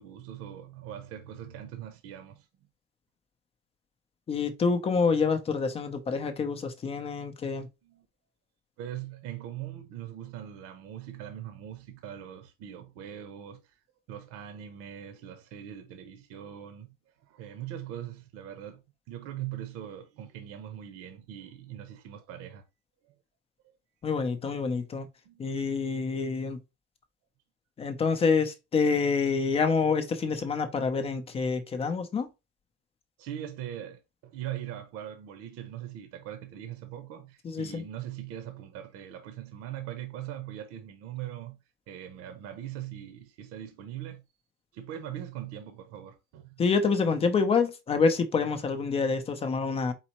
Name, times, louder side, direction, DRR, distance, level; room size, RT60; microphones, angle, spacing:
voice 1, 0.0-2.7 7.8-8.1 8.8-13.8 14.1-16.9 17.2-22.6 23.0-23.1 25.2-25.4 33.2-41.6 41.9-44.2 44.7-46.5, right 11 dB, 55° right, 0.8 m, -41 dB
voice 2, 4.3-7.7 24.0-25.1 25.4-26.6 27.8-32.3 37.4-37.8 46.6-49.9, left 5 dB, 20° left, 0.6 m, -27 dB
4.2 x 4.1 x 2.9 m
cardioid pair, 155°, 29 cm